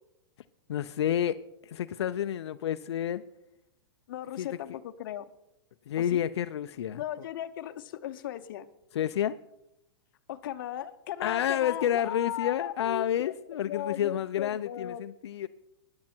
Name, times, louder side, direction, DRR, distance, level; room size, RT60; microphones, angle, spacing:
voice 1, 0.7-1.3 1.6-3.2 4.4-4.5 5.9-7.0 8.9-9.4 11.2-15.5, left 10 dB, 85° left, 0.5 m, -29 dB
voice 2, 4.1-5.3 6.0-6.2 6.9-8.7 10.3-13.1 13.7-15.0, left 12 dB, 55° left, 0.9 m, -37 dB
15.0 x 10.5 x 4.5 m
hypercardioid pair, 160°, 14 cm